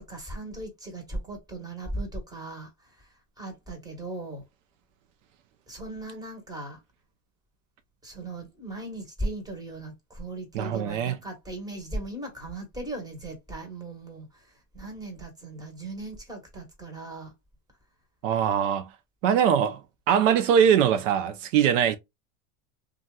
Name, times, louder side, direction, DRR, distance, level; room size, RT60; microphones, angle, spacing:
voice 1, 0.0-4.4 5.7-6.8 8.0-17.3, right 2 dB, 10° right, 1.2 m, -38 dB
voice 2, 10.5-11.1 18.2-18.9 19.2-19.8 20.1-22.0, right 8 dB, 75° right, 0.6 m, -22 dB
2.7 x 2.4 x 2.2 m
supercardioid pair, 120°, 38 cm